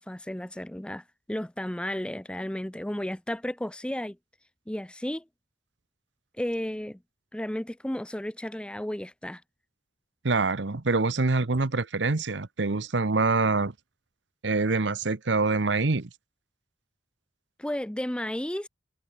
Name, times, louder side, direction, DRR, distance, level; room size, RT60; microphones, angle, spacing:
voice 1, 0.0-4.2 4.7-5.2 6.4-7.0 7.3-9.4 17.6-18.7, left 1 dB, 5° left, 0.6 m, -33 dB
voice 2, 10.2-13.7 14.4-16.1, right 3 dB, 80° right, 1.0 m, -25 dB
head